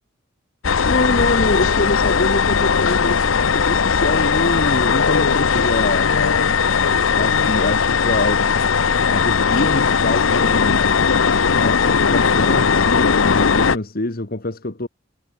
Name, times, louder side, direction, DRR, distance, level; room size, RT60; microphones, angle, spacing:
sound 1, 0.6-13.8, left 5 dB, 75° left, 0.8 m, -18 dB
voice 1, 0.9-6.1 7.1-8.5 9.1-10.8 11.5-14.9, left 2 dB, 45° left, 1.6 m, -24 dB
head